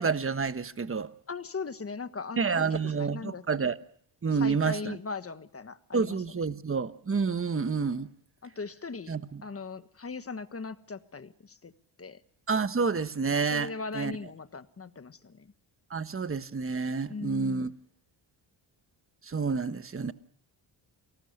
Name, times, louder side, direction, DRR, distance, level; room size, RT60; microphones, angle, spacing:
voice 1, 0.0-1.1 2.4-3.8 4.2-5.0 5.9-8.1 9.1-9.4 12.5-14.1 15.9-17.7 19.2-20.1, right 5 dB, 25° right, 1.2 m, -29 dB
voice 2, 1.3-3.4 4.4-6.2 8.4-9.2 9.4-11.7 12.0-12.2 13.5-15.5 17.1-17.7, left 4 dB, 30° left, 1.4 m, -39 dB
29.0 x 18.5 x 6.6 m
cardioid pair, 80°, 49 cm